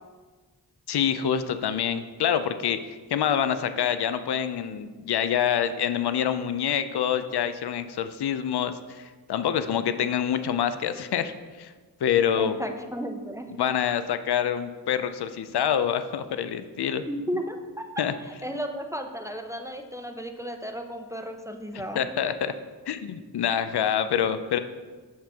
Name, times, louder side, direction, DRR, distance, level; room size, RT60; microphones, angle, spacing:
voice 1, 0.9-11.7 12.0-12.6 13.6-17.0 18.0-18.1 21.9-22.5 22.9-24.6, left 9 dB, 75° left, 11 dB, 0.5 m, -26 dB
voice 2, 12.3-13.5 17.1-22.0, equal, 10° right, 5 dB, 0.6 m, -34 dB
7.4 x 5.9 x 3.5 m, 1.4 s
cardioid pair, 55°, 40 cm